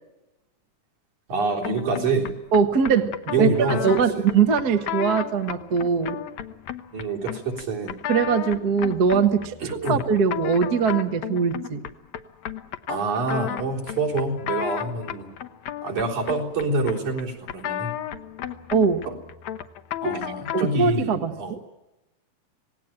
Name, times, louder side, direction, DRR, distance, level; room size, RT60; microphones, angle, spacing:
voice 1, 1.3-2.3 3.3-4.3 6.9-7.9 9.6-10.0 12.9-15.3 15.8-17.9 19.1-19.2 20.0-21.5, right 3 dB, 70° right, -1 dB, 5.3 m, -26 dB
sound 1, 1.6-20.8, left 11 dB, 70° left, 2.2 m, -34 dB
voice 2, 2.5-6.2 8.1-11.9 18.7-19.0 20.0-20.2 20.5-21.6, right 6 dB, 45° right, 6 dB, 1.4 m, -22 dB
26.5 x 18.5 x 8.8 m, 0.98 s
omnidirectional pair, 3.5 m